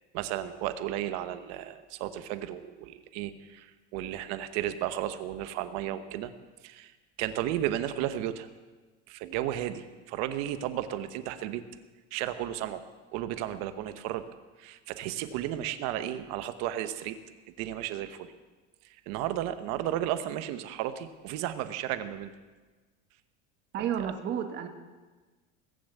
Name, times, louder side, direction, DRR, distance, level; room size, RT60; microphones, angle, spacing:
voice 1, 0.1-6.3 6.6-6.9 7.2-8.5 9.1-11.6 12.1-12.8 13.1-14.2 14.6-17.2 17.6-18.3 18.8-22.3 23.8-24.1, right 12 dB, 55° right, 11 dB, 1.1 m, -34 dB
voice 2, 23.7-24.7, right 9 dB, 35° right, 6 dB, 1.4 m, -31 dB
20.5 x 7.3 x 8.3 m, 1.3 s
cardioid pair, 150°, 30 cm